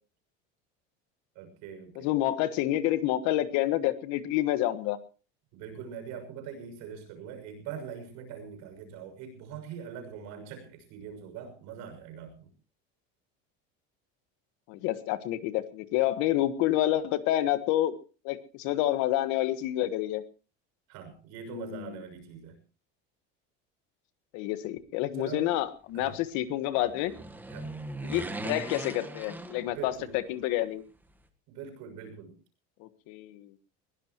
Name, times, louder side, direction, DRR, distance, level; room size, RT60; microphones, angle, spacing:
voice 1, 1.3-2.1 5.5-12.5 20.9-22.6 25.1-25.5 25.9-26.2 27.5-27.7 29.7-30.1 31.5-32.4, right 7 dB, 70° right, 7 dB, 6.5 m, -42 dB
voice 2, 2.0-5.0 14.7-17.9 18.2-20.2 21.5-21.8 24.3-27.1 28.0-29.9 30.3-30.8 32.8-33.5, left 14 dB, 70° left, 12 dB, 1.5 m, -28 dB
sound 1, 26.8-30.2 30.5-30.6, right 2 dB, 5° right, 1.5 m, -39 dB
22.0 x 16.0 x 3.1 m, 0.35 s
cardioid pair, 145°, 30 cm